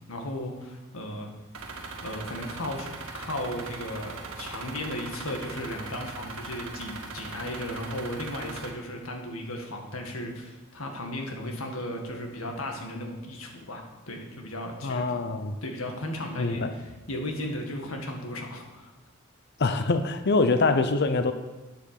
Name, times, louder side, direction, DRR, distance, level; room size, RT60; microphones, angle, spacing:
voice 1, 0.1-1.3 2.0-2.9 3.1-15.2 15.6-18.9, left 1 dB, 80° left, 3 dB, 1.9 m, -35 dB
sound 1, 1.5-8.7, right 3 dB, 70° right, 1.6 m, -40 dB
voice 2, 14.8-15.6 16.4-16.7 19.6-21.3, left 3 dB, 55° left, 9 dB, 0.7 m, -24 dB
9.1 x 7.7 x 6.9 m, 1.1 s
head